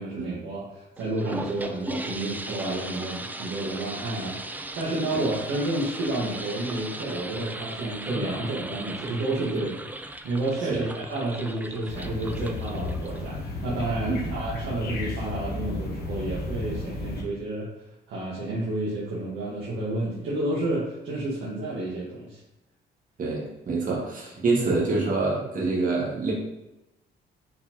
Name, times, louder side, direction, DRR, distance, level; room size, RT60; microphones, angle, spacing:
voice 1, 0.0-9.8 10.2-17.7 18.1-22.4, right 2 dB, 85° right, -7 dB, 1.3 m, -30 dB
sound 1, 1.0-13.5, right 2 dB, 10° right, 0.3 m, -37 dB
sound 2, 11.9-17.2, left 2 dB, 55° left, 1.0 m, -33 dB
voice 2, 23.2-26.3, right 3 dB, 40° right, -4 dB, 1.5 m, -26 dB
4.4 x 4.1 x 2.9 m, 0.96 s
cardioid pair, 90°, 20 cm